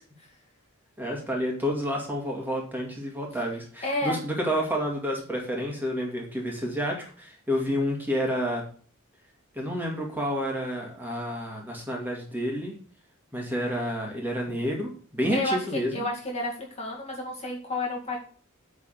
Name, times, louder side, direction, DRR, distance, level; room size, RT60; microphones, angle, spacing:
voice 1, 1.0-8.6 9.5-12.7 13.3-16.1, equal, 10° right, -1 dB, 2.3 m, -29 dB
voice 2, 3.8-4.2 15.3-18.2, left 2 dB, 30° left, -1 dB, 2.2 m, -30 dB
9.7 x 4.2 x 6.7 m, 0.43 s
head